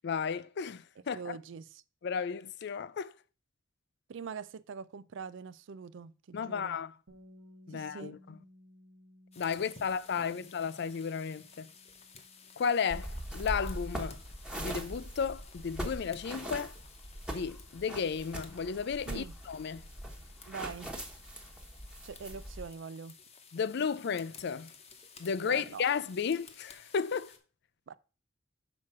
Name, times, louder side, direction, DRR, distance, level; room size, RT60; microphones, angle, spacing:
voice 1, 0.0-1.4 2.0-3.1 6.3-7.0 7.7-8.2 9.4-11.7 12.6-14.2 14.6-16.8 17.3-19.9 23.5-24.7 25.2-27.3, left 6 dB, 60° left, 0.4 m, -33 dB
voice 2, 1.1-1.8 4.1-6.8 7.7-8.2 10.1-10.3 19.1-19.3 20.5-20.9 22.0-23.1 25.5-25.9 27.9-28.0, right 6 dB, 70° right, 0.4 m, -43 dB
Bass guitar, 7.1-13.3, left 1 dB, 90° right, 1.3 m, -59 dB
sound 1, 9.3-27.4, left 5 dB, 35° left, 1.0 m, -56 dB
sound 2, 12.9-22.7, equal, 5° right, 1.2 m, -41 dB
6.2 x 4.5 x 5.9 m
head